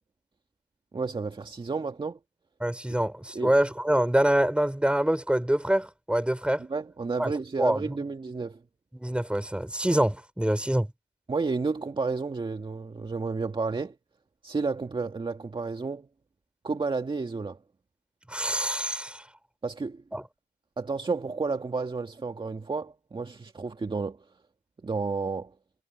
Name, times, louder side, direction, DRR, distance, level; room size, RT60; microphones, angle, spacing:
voice 1, 0.9-2.2 3.3-3.6 6.6-8.6 11.3-14.0 14.4-16.1 16.6-17.6 19.6-20.0 20.8-24.2 24.8-25.5, right 4 dB, 25° right, 1.9 m, -31 dB
voice 2, 2.6-6.6 7.2-7.3 7.6-7.8 8.9-10.9 18.3-19.2 20.1-20.2, right 1 dB, 5° right, 5.9 m, -25 dB
cardioid pair, 90°, 20 cm